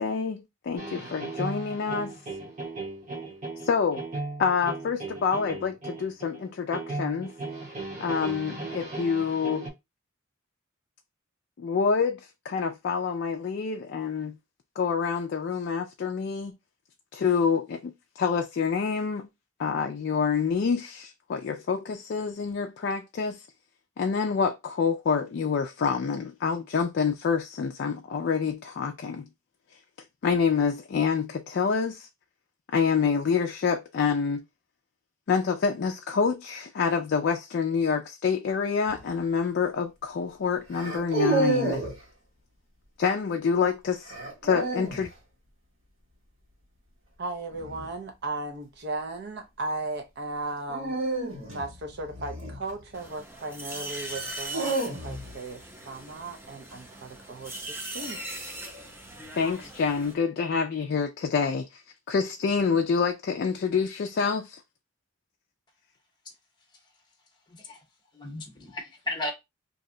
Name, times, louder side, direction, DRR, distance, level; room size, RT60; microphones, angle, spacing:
voice 1, 0.0-2.2 3.6-4.0 4.4-7.3 8.0-9.7 11.6-14.4 14.8-16.5 17.1-19.3 19.6-23.4 24.0-29.3 30.2-32.1 32.7-34.4 35.3-41.8 43.0-44.1 44.4-45.1 59.3-61.8 62.1-64.6, left 5 dB, 55° left, 0.3 m, -27 dB
sound 1, 0.8-9.7, right 3 dB, 40° right, 0.9 m, -37 dB
sound 2, 38.9-39.2 40.7-42.0 44.1-45.1 47.5-47.9 50.7-53.1 54.1-55.4, right 2 dB, 90° right, 1.4 m, -30 dB
voice 2, 47.2-51.1 51.5-58.2, right 2 dB, 55° right, 0.5 m, -36 dB
sound 3, 52.9-60.1, right 1 dB, 10° right, 0.6 m, -40 dB
voice 3, 67.5-67.8 68.1-69.3, left 2 dB, 25° left, 0.8 m, -35 dB
2.7 x 2.1 x 3.7 m
head